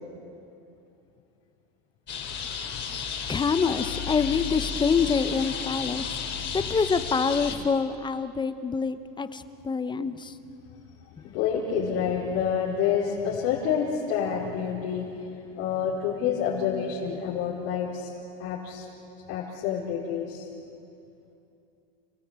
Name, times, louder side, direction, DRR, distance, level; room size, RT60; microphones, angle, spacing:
sound 1, 2.1-7.5, left 6 dB, 40° left, 3.2 m, -33 dB
voice 1, 3.3-6.2 6.5-10.3, left 5 dB, 15° left, 11 dB, 0.8 m, -26 dB
voice 2, 11.2-18.1 18.4-18.9 19.3-20.4, left 7 dB, 75° left, -7 dB, 4.5 m, -28 dB
29.5 x 16.5 x 8.1 m, 2.7 s
supercardioid pair, 130°, 29 cm